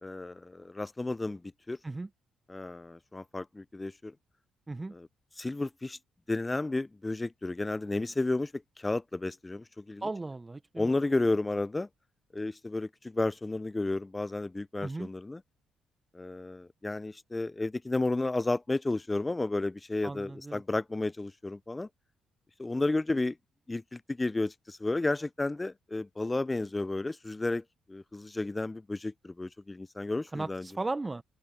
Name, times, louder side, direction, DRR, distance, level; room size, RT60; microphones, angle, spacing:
voice 1, 0.0-1.4 1.7-1.8 2.5-4.1 4.9-5.1 5.4-6.0 6.3-10.0 10.8-11.9 12.3-15.4 16.1-21.9 22.6-23.4 23.7-27.6 27.9-30.7, left 2 dB, 20° left, 0.5 m, -32 dB
voice 2, 10.0-10.9 14.8-15.1 20.0-20.6 30.3-31.2, right 2 dB, 25° right, 0.9 m, -36 dB
open air
hypercardioid pair, 50°, 0 cm